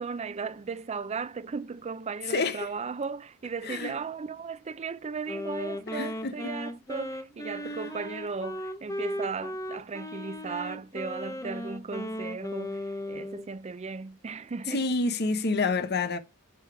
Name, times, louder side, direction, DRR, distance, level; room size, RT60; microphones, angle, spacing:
voice 1, 0.0-14.9, right 5 dB, 30° right, 0.4 m, -36 dB
voice 2, 2.3-2.7 3.6-3.9 5.9-6.5 7.7-7.8 14.7-16.2, left 3 dB, 50° left, 0.9 m, -28 dB
Wind instrument woodwind instrument, 5.3-13.5, left 1 dB, 15° left, 0.9 m, -36 dB
9.6 x 3.5 x 4.7 m
head